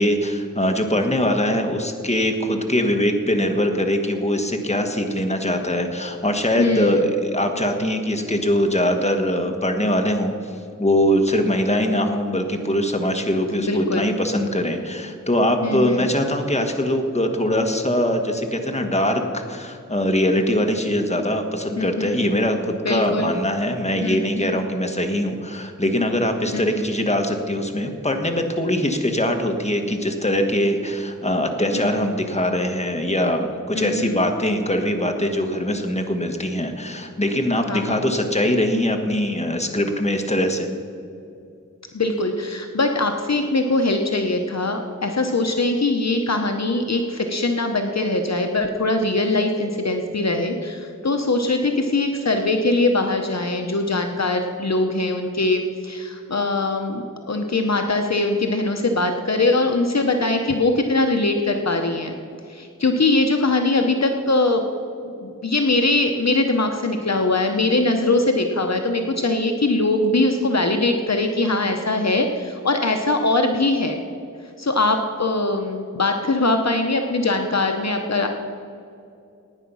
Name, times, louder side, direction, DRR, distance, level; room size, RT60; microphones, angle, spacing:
voice 1, 0.0-10.3 10.8-40.7, left 1 dB, 20° left, 4 dB, 1.5 m, -22 dB
voice 2, 6.6-7.0 13.6-14.1 15.6-16.0 21.8-22.2 22.8-23.3 24.0-24.6 26.5-26.8 31.7-32.0 33.7-34.2 37.7-38.0 41.9-62.1 62.5-64.6 65.0-74.0 74.6-78.3, left 2 dB, 55° left, 5 dB, 1.0 m, -22 dB
16.5 x 9.5 x 5.6 m, 2.6 s
wide cardioid pair, 65°, 31 cm